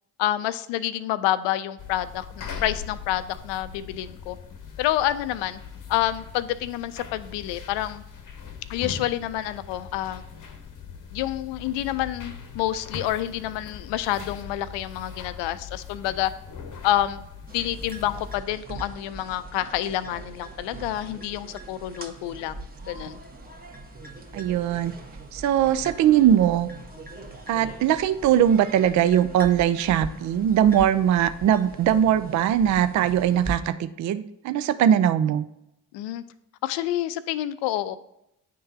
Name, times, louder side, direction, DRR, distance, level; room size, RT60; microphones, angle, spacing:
voice 1, 0.2-4.4 4.8-5.6 5.9-8.0 8.7-10.2 11.1-16.3 16.8-17.2 17.5-23.2 35.9-36.2 36.6-38.0, left 13 dB, 65° left, 13 dB, 0.5 m, -28 dB
sound 1, 1.8-18.4, left 6 dB, 40° left, 0.9 m, -41 dB
sound 2, 17.5-33.6, right 2 dB, 20° right, 1.3 m, -41 dB
voice 2, 24.3-24.9 25.3-26.7 27.5-35.5, right 10 dB, 40° right, 13 dB, 0.4 m, -21 dB
10.0 x 3.7 x 2.7 m, 0.84 s
hypercardioid pair, 45°, 46 cm